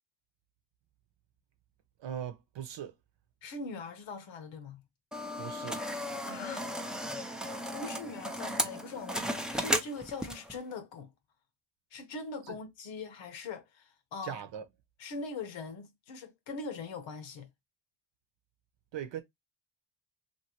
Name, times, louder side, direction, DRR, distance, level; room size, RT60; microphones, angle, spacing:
voice 1, 2.0-2.9 5.4-5.8 12.5-12.6 14.2-14.7 18.9-19.2, right 9 dB, 75° right, 0.8 m, -39 dB
voice 2, 3.4-4.8 6.3-6.7 7.7-11.1 11.9-14.4 15.0-17.5, left 3 dB, 85° left, 1.0 m, -41 dB
sound 1, 5.1-10.6, equal, ahead, 0.4 m, -35 dB
2.8 x 2.7 x 2.9 m
cardioid pair, 75°, 45 cm